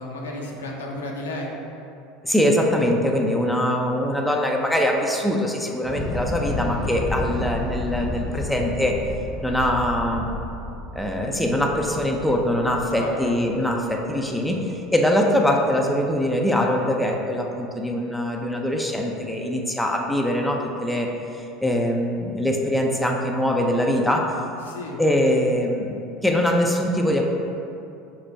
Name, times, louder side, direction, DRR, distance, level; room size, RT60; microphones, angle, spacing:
voice 1, 0.0-1.5 13.0-13.2 24.6-25.0, left 2 dB, 80° left, -1 dB, 0.6 m, -33 dB
voice 2, 2.2-9.0 9.4-10.3 10.9-14.7 14.9-21.1 21.6-24.3 25.0-26.0 26.2-27.3, left 1 dB, 5° left, 0 dB, 0.5 m, -22 dB
Thunder / Explosion, 5.8-14.0, left 2 dB, 20° left, 0.8 m, -31 dB
4.8 x 2.3 x 4.6 m, 2.7 s
figure-of-eight pair, 75°, 0 cm